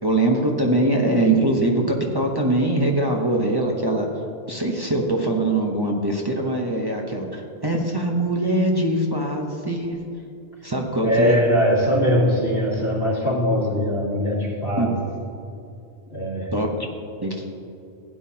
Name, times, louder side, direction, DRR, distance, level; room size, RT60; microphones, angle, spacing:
voice 1, 0.0-4.1 4.5-10.0 10.6-11.4 14.8-14.9 16.5-16.7 17.2-17.5, right 1 dB, 25° right, -1 dB, 0.9 m, -22 dB
voice 2, 11.0-14.9 16.1-16.5, equal, 80° left, -5 dB, 2.7 m, -21 dB
15.5 x 9.3 x 2.8 m, 2.5 s
omnidirectional pair, 1.1 m